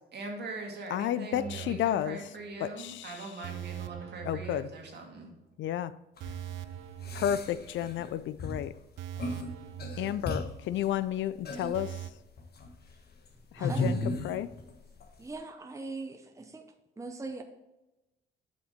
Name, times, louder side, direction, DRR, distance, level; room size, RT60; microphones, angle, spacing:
voice 1, 0.1-5.3, right 3 dB, 55° right, 2.1 m, -41 dB
voice 2, 0.9-2.2 2.6-3.1 4.3-4.7 5.6-5.9 7.1-8.7 10.0-11.9 13.6-14.5, left 11 dB, 70° left, 0.4 m, -31 dB
sound 1, 1.3-2.6 2.9-3.0 3.4-5.4 5.6-5.8 6.2-8.1 8.4-8.5 9.0-10.9 11.2-11.3 11.7-12.1, right 12 dB, 75° right, 0.5 m, -43 dB
sound 2, 6.2-6.4 7.0-8.1 8.4-8.7 9.2-9.5 9.8-10.7 11.4-11.8 12.4-12.7 13.6-14.7 15.0-15.1, left 2 dB, 55° left, 1.3 m, -34 dB
voice 3, 13.5-14.0 15.2-16.7 17.0-17.4, right 3 dB, 15° right, 0.8 m, -40 dB
7.8 x 5.8 x 4.2 m
cardioid pair, 90°, 20 cm